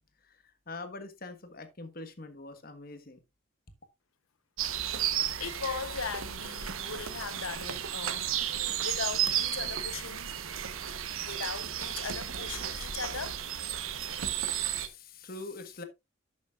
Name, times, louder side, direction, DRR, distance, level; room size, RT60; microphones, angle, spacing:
voice 1, 0.2-3.2 14.0-15.8, left 2 dB, 45° left, 1.4 m, -44 dB
sound 1, 4.6-14.9, right 10 dB, 85° right, 1.1 m, -33 dB
voice 2, 5.1-10.4 11.2-13.4, left 5 dB, 85° left, 0.9 m, -39 dB
11.5 x 8.4 x 2.4 m
head